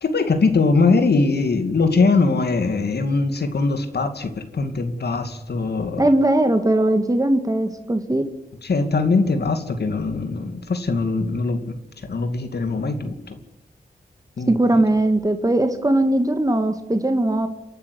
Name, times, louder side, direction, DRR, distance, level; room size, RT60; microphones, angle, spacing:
voice 1, 0.0-6.1 8.6-11.8 12.1-13.4 14.4-14.5, left 3 dB, 80° left, 7 dB, 2.5 m, -21 dB
voice 2, 6.0-8.2 14.5-17.5, right 1 dB, 20° right, 7 dB, 2.2 m, -19 dB
28.5 x 12.0 x 9.7 m, 0.85 s
cardioid pair, 60°, 17 cm